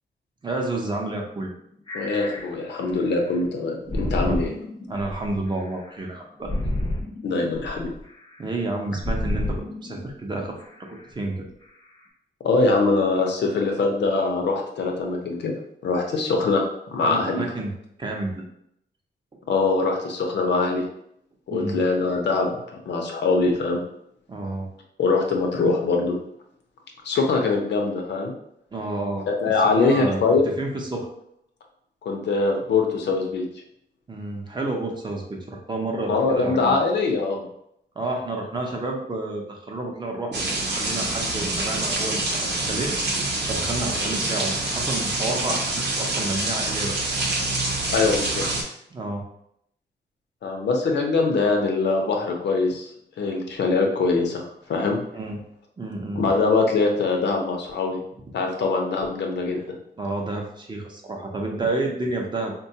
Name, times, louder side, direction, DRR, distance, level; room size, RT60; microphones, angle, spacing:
voice 1, 0.4-1.5 3.9-4.4 4.9-6.5 8.4-11.5 17.0-17.7 18.0-18.4 21.5-21.8 24.3-24.7 28.7-29.3 29.6-31.1 34.1-36.8 38.0-42.9 43.5-47.1 48.9-49.2 55.1-55.4 55.8-56.3 60.0-62.5, right 2 dB, 25° right, 1 dB, 0.5 m, -30 dB
sound 1, 1.3-1.6 1.9-3.4 3.9-6.0 6.4-8.5 9.0-10.1 10.6-11.0 11.6-11.7, left 1 dB, 25° left, 0.5 m, -30 dB
voice 2, 1.9-4.5 7.2-7.9 12.4-15.5 15.8-17.4 19.5-20.8 21.5-23.8 25.0-26.2 27.0-28.3 29.3-30.4 32.0-33.4 36.1-37.5 43.9-44.1 47.9-48.4 50.4-52.8 53.2-54.4 54.7-55.0 56.1-58.0 58.3-59.6, left 3 dB, 80° left, 1 dB, 0.6 m, -23 dB
sound 2, 40.3-48.6, right 2 dB, 75° right, 0.7 m, -26 dB
3.7 x 2.2 x 2.7 m, 0.73 s
wide cardioid pair, 150°, 18 cm